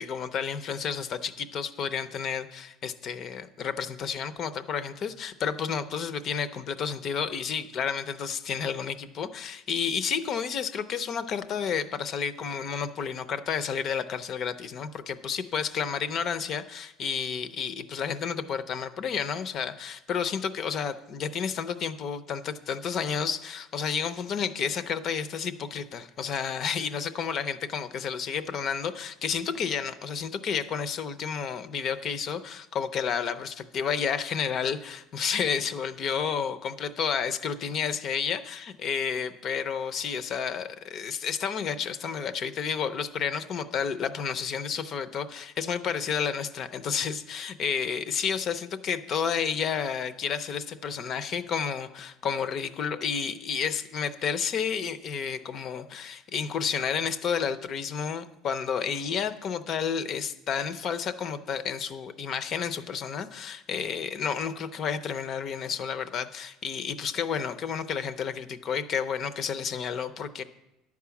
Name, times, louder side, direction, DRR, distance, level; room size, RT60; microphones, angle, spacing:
voice 1, 0.0-70.4, left 7 dB, 40° left, 11 dB, 0.5 m, -31 dB
11.0 x 4.8 x 7.0 m, 0.89 s
cardioid pair, 150°, 0 cm